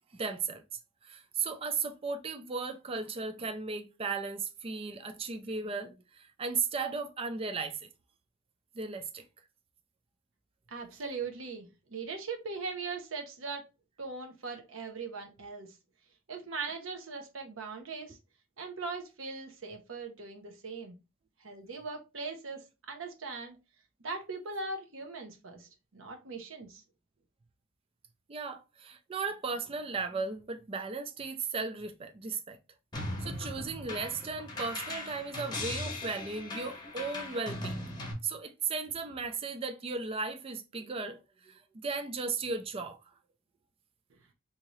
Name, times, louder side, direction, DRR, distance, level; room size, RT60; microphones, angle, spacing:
voice 1, 0.1-0.6 1.0-7.9 8.8-9.2 28.3-32.6 33.2-37.8 38.2-43.0, right 4 dB, 30° right, 0.4 m, -36 dB
voice 2, 10.7-13.7 14.0-15.7 16.3-18.2 18.6-20.9 21.4-23.6 24.0-26.8, right 4 dB, 75° right, 0.8 m, -40 dB
sound 1, 32.9-38.1, left 2 dB, 20° left, 0.9 m, -39 dB
3.6 x 2.8 x 3.0 m
head